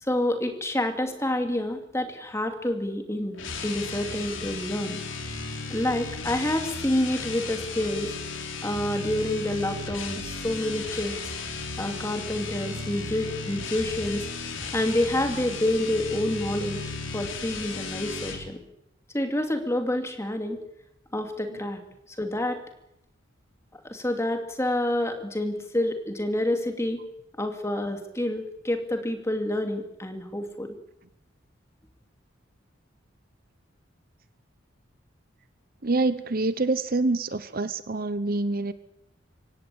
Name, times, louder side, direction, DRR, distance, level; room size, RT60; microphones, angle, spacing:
voice 1, 0.0-3.4 3.6-5.0 5.7-8.1 8.6-11.2 11.8-14.3 14.7-16.8 17.1-18.6 19.1-20.6 21.1-21.8 22.2-22.6 23.8-27.0 27.4-30.8, left 1 dB, 15° left, 5 dB, 2.7 m, -28 dB
sound 1, 3.3-18.5, left 4 dB, 80° left, 3.7 m, -35 dB
voice 2, 35.8-38.7, right 3 dB, 50° right, 13 dB, 0.9 m, -26 dB
24.0 x 17.5 x 8.7 m, 0.82 s
head